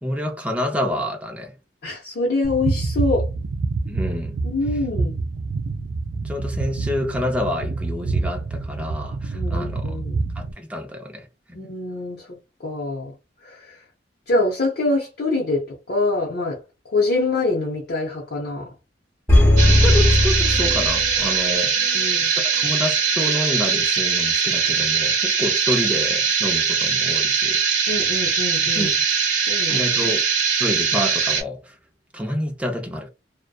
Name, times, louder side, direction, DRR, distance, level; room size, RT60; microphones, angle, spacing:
voice 1, 0.0-1.6 3.9-4.4 6.2-10.0 10.4-11.3 19.6-21.8 22.4-27.6 28.7-29.0 29.7-30.3 30.6-31.8 32.1-33.1, left 1 dB, 10° right, 0.5 m, -28 dB
voice 2, 1.8-3.3 4.4-5.2 9.3-10.2 11.5-12.3 12.6-13.1 13.4-13.8 14.3-16.6 16.9-18.7 21.8-22.3 27.9-28.9 29.5-29.9, left 2 dB, 60° left, 0.7 m, -25 dB
sound 1, 2.4-10.5, right 3 dB, 70° right, 0.4 m, -27 dB
sound 2, 19.3-21.5 21.8-21.9, left 1 dB, 15° left, 0.8 m, -17 dB
sound 3, 19.6-31.4, right 6 dB, 45° right, 0.8 m, -21 dB
2.6 x 2.1 x 2.2 m
head